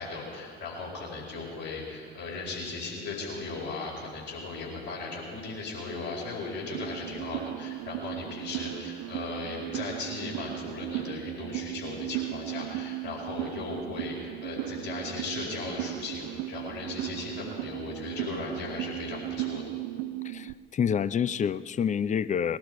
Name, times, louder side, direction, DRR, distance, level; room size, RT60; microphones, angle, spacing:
voice 1, 0.0-19.6, left 3 dB, 70° left, -4 dB, 5.1 m, -37 dB
sound 1, 6.7-20.5, right 15 dB, 60° right, 0.5 m, -36 dB
voice 2, 20.2-22.6, left 7 dB, 25° left, 17 dB, 0.5 m, -28 dB
20.5 x 12.0 x 4.8 m, 2.2 s
figure-of-eight pair, 55°, 30 cm